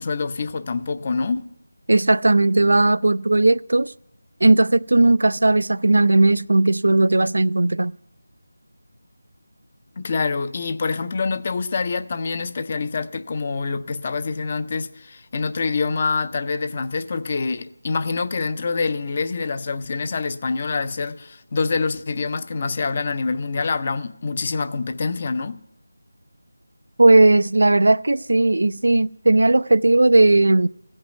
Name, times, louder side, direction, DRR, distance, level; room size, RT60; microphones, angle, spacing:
voice 1, 0.0-1.5 10.0-25.6, left 4 dB, 30° left, 0.5 m, -26 dB
voice 2, 1.9-3.9 4.4-7.9 27.0-30.7, right 2 dB, 70° right, 0.3 m, -16 dB
15.5 x 5.4 x 7.7 m
figure-of-eight pair, 170°, 0 cm